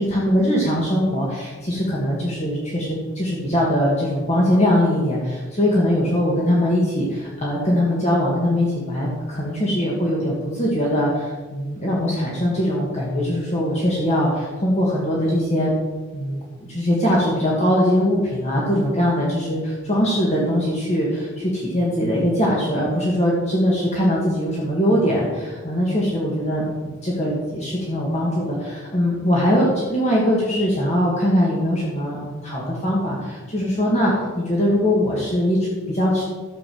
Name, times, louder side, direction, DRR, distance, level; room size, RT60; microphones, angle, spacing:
voice 1, 0.0-15.7 16.1-16.4 16.7-36.2, equal, 30° left, -4 dB, 2.1 m, -21 dB
12.5 x 6.8 x 7.7 m, 1.4 s
head